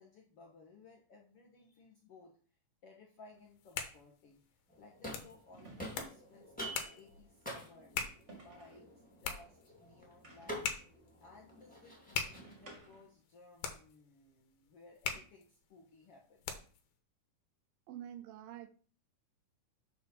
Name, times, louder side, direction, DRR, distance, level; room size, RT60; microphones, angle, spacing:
voice 1, 0.0-2.3 2.8-4.4 4.8-7.9 8.3-8.9 9.2-10.8 11.2-16.6, left 3 dB, 65° left, 1.5 m, -59 dB
sound 1, 3.3-3.5 5.5-6.3 8.3-8.9 10.2-10.8 12.3-13.2, right 2 dB, 25° right, 1.6 m, -56 dB
sound 2, 3.4-16.9, left 7 dB, 90° left, 2.9 m, -44 dB
sound 3, 4.7-5.5 5.8-12.8, equal, 5° left, 1.8 m, -48 dB
voice 2, 17.9-18.7, right 11 dB, 80° right, 2.2 m, -47 dB
6.8 x 4.8 x 6.5 m
omnidirectional pair, 4.3 m